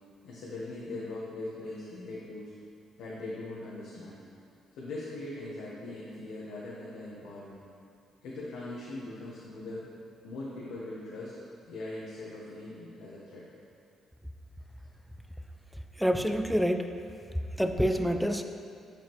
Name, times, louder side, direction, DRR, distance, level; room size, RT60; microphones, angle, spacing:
voice 1, 0.2-2.5 3.0-4.2 4.8-7.6 8.2-9.9 10.2-11.4 11.7-13.4, left 2 dB, 85° left, -7 dB, 1.0 m, -40 dB
voice 2, 16.0-16.9 17.6-18.4, equal, ahead, 6 dB, 0.4 m, -27 dB
7.8 x 5.1 x 3.0 m, 2.4 s
cardioid pair, 90°, 0 cm